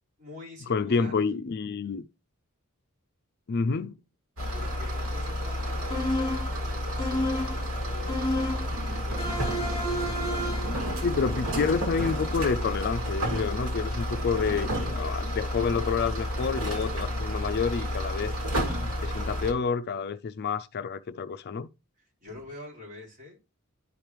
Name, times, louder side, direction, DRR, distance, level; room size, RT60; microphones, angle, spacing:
voice 1, 0.2-1.2 4.5-8.2 8.4-10.5 22.0-23.4, left 2 dB, 40° right, 4.3 m, -46 dB
voice 2, 0.7-2.1 3.5-4.0 11.0-21.7, left 5 dB, 50° left, 0.4 m, -29 dB
sound 1, 4.4-19.5, equal, 90° right, 2.3 m, -30 dB
sound 2, 5.9-6.6 7.0-7.6 8.1-8.7 9.2-10.8, left 1 dB, 25° left, 2.8 m, -31 dB
11.0 x 5.1 x 3.0 m
head